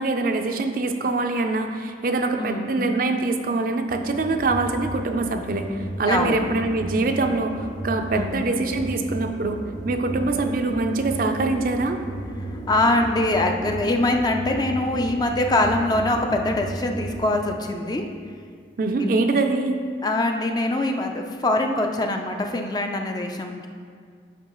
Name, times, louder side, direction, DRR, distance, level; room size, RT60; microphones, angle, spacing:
voice 1, 0.0-5.7 6.0-7.6 7.8-9.6 9.9-12.0 18.8-19.8, right 3 dB, 50° right, 5 dB, 0.4 m, -24 dB
voice 2, 2.4-2.7 6.1-6.5 8.1-8.3 12.5-18.1 19.0-19.1 20.0-23.7, left 2 dB, 20° left, 4 dB, 0.4 m, -23 dB
sound 1, 3.9-17.5, right 1 dB, 50° left, 1.6 m, -34 dB
9.2 x 5.9 x 3.0 m, 2.1 s
head